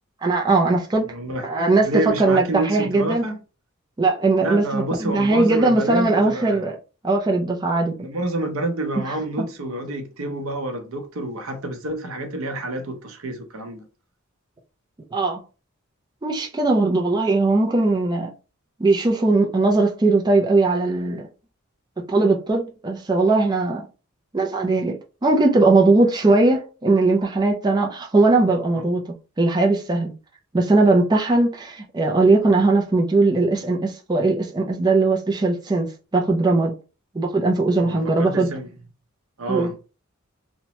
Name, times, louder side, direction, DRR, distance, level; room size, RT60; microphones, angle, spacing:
voice 1, 0.2-1.1 1.4-1.9 2.2-3.2 4.0-6.8 7.0-7.9 15.1-15.4 16.2-18.3 18.8-21.2 22.1-23.9 24.3-25.0 25.2-29.0 29.4-30.1 30.5-36.7 37.1-38.5 39.5-39.7, right 3 dB, 20° right, 0.4 m, -19 dB
voice 2, 1.0-3.4 4.4-6.7 8.0-13.8 28.8-28.9 37.8-38.7 39.4-39.7, right 1 dB, 80° right, 0.7 m, -28 dB
2.9 x 2.1 x 2.8 m
head